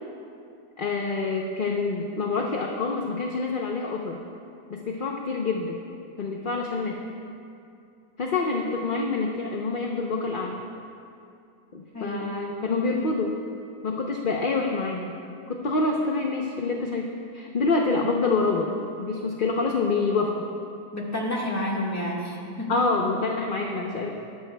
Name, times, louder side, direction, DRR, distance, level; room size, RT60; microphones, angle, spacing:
voice 1, 0.8-4.2 4.7-5.8 6.2-7.0 8.2-10.6 11.7-13.4 13.8-15.1 15.5-20.5 22.7-24.1, left 3 dB, 45° left, 0 dB, 0.7 m, -26 dB
voice 2, 20.9-22.9, left 1 dB, 10° left, -3 dB, 1.5 m, -30 dB
20.0 x 13.0 x 2.3 m, 2.5 s
omnidirectional pair, 1.6 m